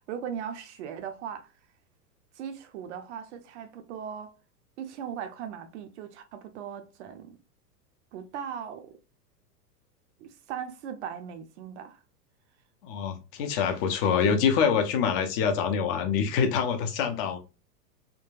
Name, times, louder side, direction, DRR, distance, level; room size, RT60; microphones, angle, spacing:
voice 1, 0.1-1.5 2.3-4.3 4.8-7.4 8.1-9.0 10.2-12.0, right 8 dB, 45° right, 0.6 m, -38 dB
voice 2, 12.8-17.4, left 6 dB, 35° left, 0.6 m, -25 dB
3.7 x 2.3 x 2.3 m
figure-of-eight pair, 100°, 49 cm